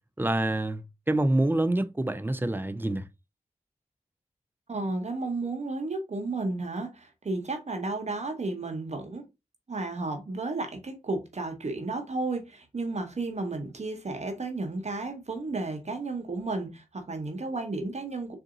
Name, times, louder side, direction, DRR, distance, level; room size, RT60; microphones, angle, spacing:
voice 1, 0.2-3.1, right 1 dB, 15° right, 0.5 m, -26 dB
voice 2, 4.7-9.2 9.7-18.4, right 3 dB, 55° right, 1.0 m, -33 dB
3.7 x 2.7 x 3.7 m
wide cardioid pair, 60°, 14 cm